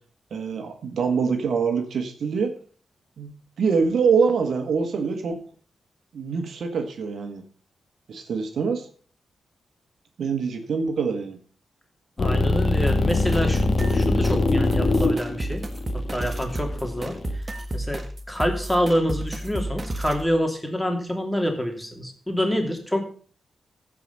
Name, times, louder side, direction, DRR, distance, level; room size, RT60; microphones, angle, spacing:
voice 1, 0.3-2.5 3.2-3.3 3.6-5.4 6.1-7.4 8.1-8.9 10.2-11.4, right 5 dB, 75° right, 5 dB, 1.7 m, -24 dB
sound 1, 12.2-17.3, left 2 dB, 50° left, 1.5 m, -22 dB
voice 2, 12.2-15.6 15.9-17.2 17.7-23.0, equal, 5° left, 4 dB, 2.8 m, -26 dB
sound 2, 12.9-20.3, right 1 dB, 30° right, 1.6 m, -32 dB
15.0 x 5.1 x 5.5 m, 0.43 s
cardioid pair, 65°, 0 cm